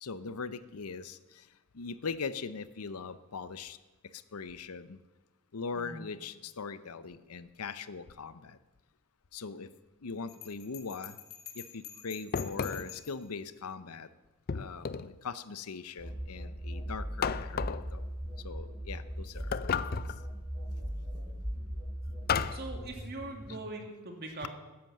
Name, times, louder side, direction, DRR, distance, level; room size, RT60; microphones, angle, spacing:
voice 1, 0.0-1.5 1.7-3.8 4.1-5.0 5.5-8.6 9.3-9.7 10.0-11.2 11.5-14.1 14.5-18.0 18.4-19.8, left 5 dB, 90° left, 14 dB, 0.7 m, -41 dB
Bell, 10.3-13.2, left 10 dB, 70° left, 2.5 m, -47 dB
sound 1, 12.3-13.0 14.5-15.2 17.2-17.9 19.5-20.2 22.3-22.7, left 6 dB, 45° left, 0.4 m, -33 dB
sound 2, 16.0-23.6, equal, 25° right, 6.6 m, -39 dB
voice 2, 22.5-24.5, right 2 dB, 50° right, 3 dB, 2.6 m, -42 dB
13.5 x 10.5 x 7.5 m, 1.2 s
head